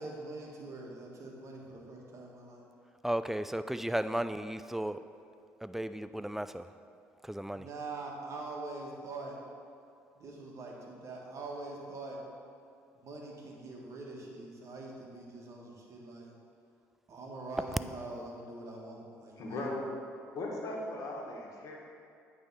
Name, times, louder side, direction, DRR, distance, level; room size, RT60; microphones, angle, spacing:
voice 1, 0.0-2.6 7.5-9.4 10.1-12.2 12.9-16.3 17.1-19.8, right 2 dB, 50° right, -1 dB, 1.6 m, -43 dB
voice 2, 3.0-5.0 5.6-6.7 7.2-7.7, right 1 dB, 5° right, 12 dB, 0.3 m, -34 dB
voice 3, 19.4-19.8 20.3-21.8, left 2 dB, 60° left, -1 dB, 1.5 m, -38 dB
8.7 x 3.5 x 5.6 m, 2.5 s
supercardioid pair, 65°, 7 cm